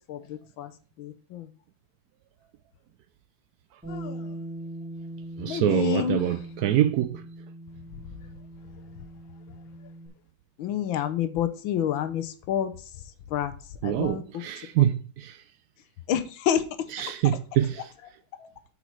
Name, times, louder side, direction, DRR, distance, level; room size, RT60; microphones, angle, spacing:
voice 1, 0.1-0.7 1.0-1.5 3.9-4.4 5.4-6.2 10.6-12.7 13.3-13.5 13.8-14.2 16.1-16.9 18.4-18.5, left 10 dB, 75° left, 1.5 m, -29 dB
Bass guitar, 3.8-10.1, right 1 dB, 5° right, 2.9 m, -41 dB
voice 2, 5.4-7.3 13.8-15.4 16.9-17.9, right 11 dB, 85° right, 0.8 m, -25 dB
8.2 x 5.6 x 4.6 m
omnidirectional pair, 2.2 m